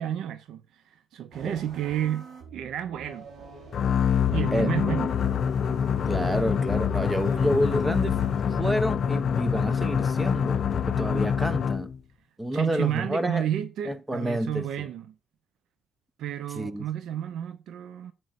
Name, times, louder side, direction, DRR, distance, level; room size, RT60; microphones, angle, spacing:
voice 1, 0.0-2.3 2.5-3.3 4.3-5.1 12.5-15.1 16.2-18.1, right 10 dB, 80° right, 0.6 m, -31 dB
sound 1, 1.3-8.6, right 3 dB, 60° right, 4.2 m, -46 dB
sound 2, 3.7-12.0, left 7 dB, 60° left, 0.5 m, -25 dB
voice 2, 4.5-5.1 6.1-8.2 8.6-11.9 12.4-13.5 13.9-14.9 16.5-16.9, equal, 10° right, 0.8 m, -29 dB
9.4 x 7.8 x 2.6 m
cardioid pair, 90°, 0 cm